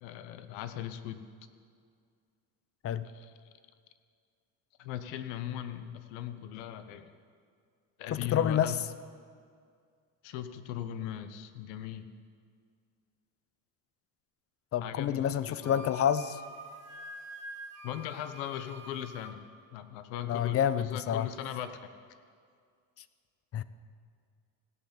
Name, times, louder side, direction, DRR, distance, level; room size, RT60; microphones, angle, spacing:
voice 1, 0.0-1.2 3.1-3.3 4.8-7.1 8.0-8.8 10.2-12.1 14.8-15.8 17.8-21.8, left 11 dB, 80° left, 10 dB, 1.0 m, -39 dB
voice 2, 8.1-8.8 14.7-16.4 20.3-21.3 23.5-23.6, left 9 dB, 35° left, 15 dB, 0.5 m, -28 dB
Wind instrument woodwind instrument, 15.6-19.4, equal, 35° right, 1.7 m, -46 dB
16.5 x 5.7 x 8.6 m, 2.1 s
supercardioid pair, 105°, 43 cm